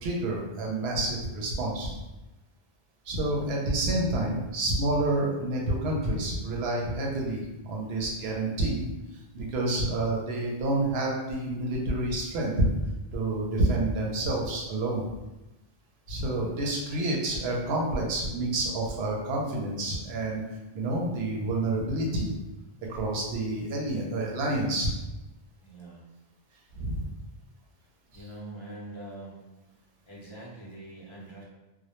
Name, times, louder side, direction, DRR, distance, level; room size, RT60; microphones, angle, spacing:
voice 1, 0.0-2.0 3.1-8.8 9.3-12.7 13.1-15.1 16.1-20.4 20.7-22.3 22.9-24.9 26.7-27.1 28.1-28.3, right 2 dB, 85° right, -2 dB, 0.8 m, -28 dB
voice 2, 25.6-26.0 28.1-29.5 30.1-31.4, right 1 dB, 35° left, -5 dB, 0.5 m, -43 dB
2.1 x 2.1 x 2.8 m, 1.0 s
omnidirectional pair, 1.0 m